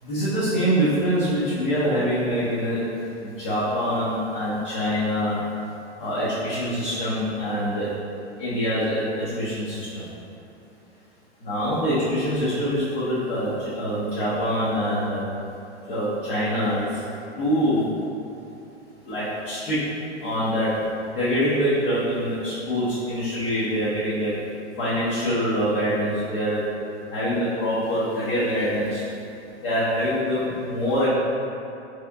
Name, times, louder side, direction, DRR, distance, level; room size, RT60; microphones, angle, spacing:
voice 1, 0.0-2.9 3.2-5.4 6.0-7.9 8.4-10.1 11.4-15.2 15.9-17.0 17.4-17.9 19.1-19.8 20.2-20.8 21.1-24.3 24.8-26.6 27.1-29.0 29.6-31.1, equal, 55° left, -12 dB, 1.1 m, -24 dB
4.2 x 3.4 x 2.3 m, 2.8 s
figure-of-eight pair, 100°, 34 cm